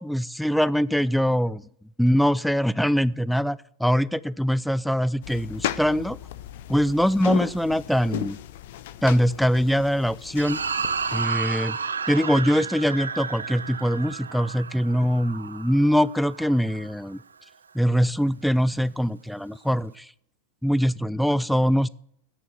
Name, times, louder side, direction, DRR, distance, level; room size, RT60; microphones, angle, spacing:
voice 1, 0.0-1.6 2.0-6.2 6.7-8.4 9.0-10.6 11.1-11.8 12.1-17.2 17.7-20.1 20.6-21.9, equal, ahead, 20 dB, 0.3 m, -23 dB
sound 1, 5.2-11.2, left 13 dB, 55° left, 0.6 m, -35 dB
sound 2, 10.4-16.9, right 5 dB, 70° right, 0.5 m, -32 dB
9.2 x 8.2 x 5.5 m, 0.72 s
figure-of-eight pair, 90°, 0 cm